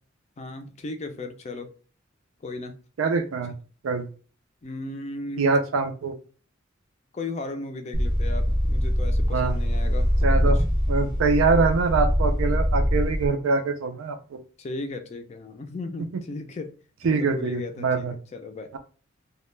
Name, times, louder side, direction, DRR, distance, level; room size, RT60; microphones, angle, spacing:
voice 1, 0.4-1.7 2.4-2.8 4.6-5.5 7.1-10.6 14.6-16.7 17.0-18.8, left 2 dB, 35° left, 0.4 m, -36 dB
voice 2, 3.0-3.5 3.8-4.1 5.4-6.2 9.3-9.6 10.2-10.6 10.9-14.4 17.0-18.1, right 4 dB, 80° right, 0.4 m, -24 dB
sound 1, 7.9-13.3, equal, 20° right, 0.6 m, -23 dB
2.2 x 2.1 x 3.0 m
head